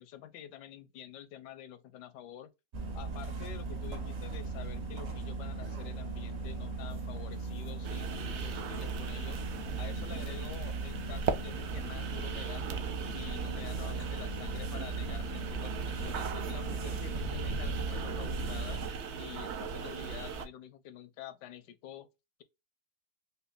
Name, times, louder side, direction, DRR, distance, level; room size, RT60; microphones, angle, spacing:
voice 1, 0.0-2.5 2.9-9.4 9.8-12.7 13.1-18.8 19.2-22.1, left 11 dB, 80° left, 1.2 m, -48 dB
sound 1, 2.7-18.9, right 3 dB, 50° right, 1.1 m, -38 dB
sound 2, 5.9-17.4, right 11 dB, 90° right, 2.3 m, -60 dB
sound 3, 7.8-20.5, right 6 dB, 65° right, 0.7 m, -39 dB
5.2 x 2.2 x 2.5 m
omnidirectional pair, 1.8 m